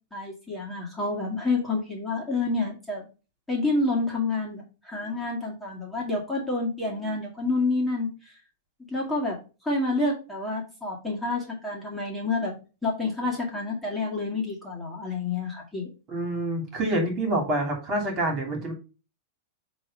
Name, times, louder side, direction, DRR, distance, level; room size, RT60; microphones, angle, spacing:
voice 1, 0.1-3.1 3.5-8.3 8.9-12.5 12.8-15.9, left 3 dB, 5° left, -3 dB, 2.2 m, -28 dB
voice 2, 16.1-18.7, right 1 dB, 35° right, 2 dB, 2.8 m, -27 dB
7.5 x 3.1 x 5.4 m, 0.32 s
hypercardioid pair, 125°, 0 cm